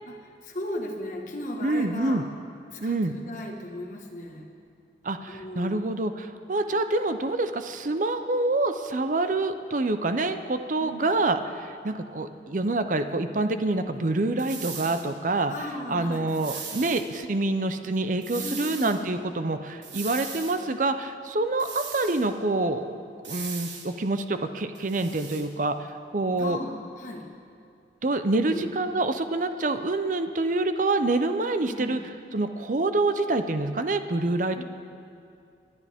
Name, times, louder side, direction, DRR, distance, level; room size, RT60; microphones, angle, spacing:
voice 1, 0.1-2.3 2.7-4.5 5.3-5.9 10.8-11.1 15.5-16.3 18.4-19.1 26.4-27.3 28.3-28.6 31.6-32.0 34.6-34.7, left 1 dB, 45° left, 0 dB, 1.6 m, -36 dB
voice 2, 1.6-2.2 2.8-3.1 5.0-15.5 15.9-23.0 23.3-25.9 26.1-26.6 28.0-32.0 32.3-34.6, right 2 dB, 45° right, 9 dB, 0.6 m, -26 dB
sound 1, 14.4-15.1 16.3-17.1 18.2-19.0 19.8-20.6 21.6-22.3 23.2-23.9 24.7-25.5, right 6 dB, 80° right, 1.6 m, -38 dB
28.5 x 11.0 x 3.6 m, 2.4 s
head